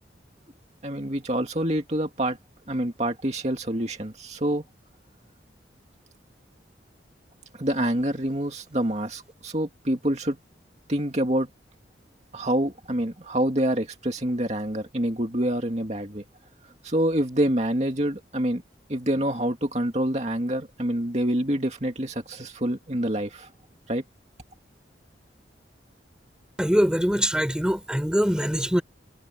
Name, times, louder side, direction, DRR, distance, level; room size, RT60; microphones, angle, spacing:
voice 1, 0.8-2.4 2.7-4.6 7.5-10.4 10.9-11.5 12.3-16.2 16.8-18.6 18.9-23.5 23.9-24.0, right 1 dB, 40° right, 2.3 m, -26 dB
voice 2, 26.6-28.8, equal, 5° right, 3.5 m, -23 dB
head